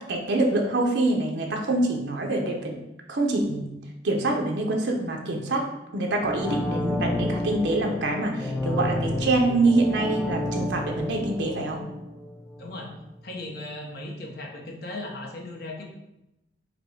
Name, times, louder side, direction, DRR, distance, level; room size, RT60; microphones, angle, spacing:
voice 1, 0.1-2.7 3.1-3.7 4.0-5.6 5.9-11.8, right 2 dB, 70° right, 1 dB, 0.7 m, -25 dB
sound 1, 6.1-13.0 13.3-13.4, left 1 dB, 5° left, 0.4 m, -30 dB
voice 2, 12.6-12.9 13.2-15.8, left 2 dB, 55° left, 0 dB, 0.8 m, -37 dB
5.1 x 2.2 x 4.5 m, 0.91 s
head